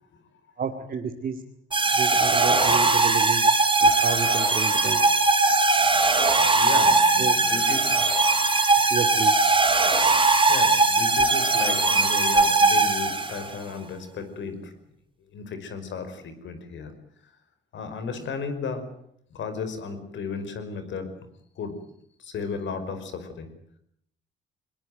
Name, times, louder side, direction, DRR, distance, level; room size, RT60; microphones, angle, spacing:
voice 1, 0.6-1.4 1.9-3.5 3.8-5.1 7.2-7.3 8.9-9.3, right 6 dB, 50° right, 4 dB, 2.5 m, -30 dB
sound 1, 1.7-13.5, right 3 dB, 25° right, 5.0 m, -20 dB
voice 2, 6.5-8.1 10.5-14.7 15.3-16.9 17.7-18.8 19.3-21.1 21.6-21.8 22.2-23.5, left 5 dB, 70° left, 9 dB, 5.3 m, -34 dB
21.5 x 21.5 x 9.3 m, 0.70 s
cardioid pair, 90°, 20 cm